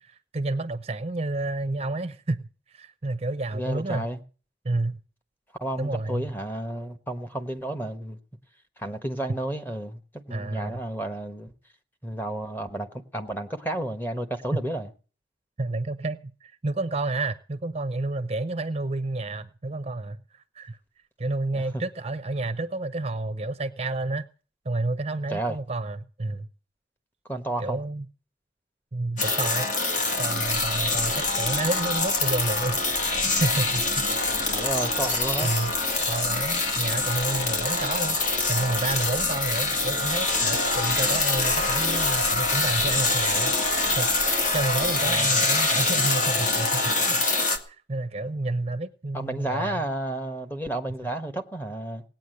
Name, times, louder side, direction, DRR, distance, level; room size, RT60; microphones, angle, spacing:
voice 1, 0.0-4.1 4.6-5.0 5.8-6.3 10.3-10.8 14.5-14.6 15.6-20.8 21.2-24.2 24.6-26.5 27.6-28.0 28.9-29.7 30.2-34.2 35.4-35.7 36.1-44.1 44.5-47.4 47.7-49.8, right 2 dB, 35° right, 0.7 m, -30 dB
voice 2, 3.5-4.2 5.6-8.2 8.8-11.5 12.0-12.9 13.1-14.9 21.5-21.6 25.3-25.6 27.3-27.8 34.5-35.5 45.0-45.4 49.1-52.0, right 1 dB, 10° left, 1.3 m, -31 dB
sound 1, 29.2-47.6, left 3 dB, 45° left, 1.9 m, -25 dB
sound 2, 30.4-45.1, equal, 80° left, 7.6 m, -43 dB
18.0 x 9.0 x 7.8 m
head